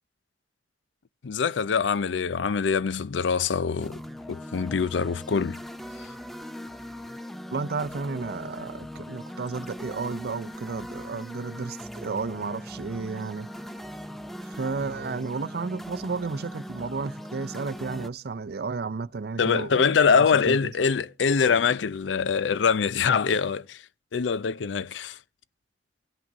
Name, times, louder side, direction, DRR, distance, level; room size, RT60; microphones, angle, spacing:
voice 1, 1.2-4.0 4.3-5.6 6.0-6.1 19.4-23.8 24.1-25.2, left 6 dB, 90° left, 0.5 m, -24 dB
sound 1, 3.8-18.1, equal, ahead, 0.5 m, -40 dB
voice 2, 7.5-13.5 14.4-20.6, right 4 dB, 60° right, 0.5 m, -33 dB
17.5 x 6.0 x 3.9 m
head